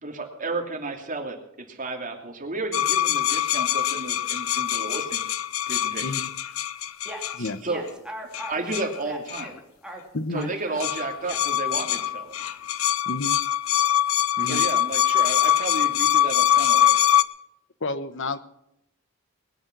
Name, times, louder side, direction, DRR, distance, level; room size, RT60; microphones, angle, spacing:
voice 1, 0.0-5.2 5.7-6.1 7.4-7.9 8.5-9.5 10.3-12.5 14.4-17.1, right 3 dB, 40° right, 3 dB, 2.8 m, -32 dB
sound 1, 2.7-7.5 8.3-9.0 9.3-9.5 10.4-10.5 10.8-17.2, left 11 dB, 85° left, 0.7 m, -23 dB
voice 2, 6.0-6.3 7.4-7.6 10.1-10.5 13.0-13.4 14.4-14.6 17.8-18.4, left 2 dB, 65° left, 12 dB, 1.1 m, -30 dB
voice 3, 7.0-10.0 10.3-10.8 11.2-11.4 14.5-14.6, right 1 dB, 5° right, -1 dB, 2.9 m, -40 dB
20.5 x 9.7 x 6.1 m, 0.82 s
head